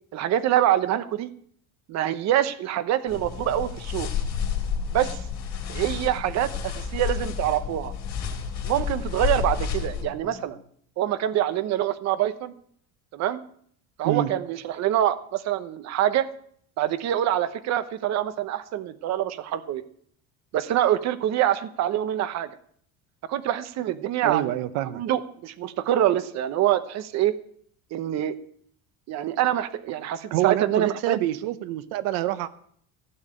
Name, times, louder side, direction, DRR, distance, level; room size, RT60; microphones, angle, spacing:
voice 1, 0.1-1.3 1.9-4.1 4.9-5.2 5.7-7.9 8.6-10.6 11.0-12.5 13.1-13.4 14.0-16.3 16.8-19.8 20.5-22.5 23.3-24.5 24.9-27.4 27.9-28.4 29.1-31.2, right 12 dB, 50° right, 12 dB, 1.0 m, -25 dB
sound 1, 3.0-10.6, left 1 dB, 5° left, 1.8 m, -48 dB
sound 2, 3.1-10.1, left 7 dB, 50° left, 3.6 m, -30 dB
voice 2, 24.2-25.0 30.3-32.5, right 14 dB, 80° right, 13 dB, 0.9 m, -26 dB
16.0 x 7.3 x 8.8 m, 0.62 s
cardioid pair, 155°, 34 cm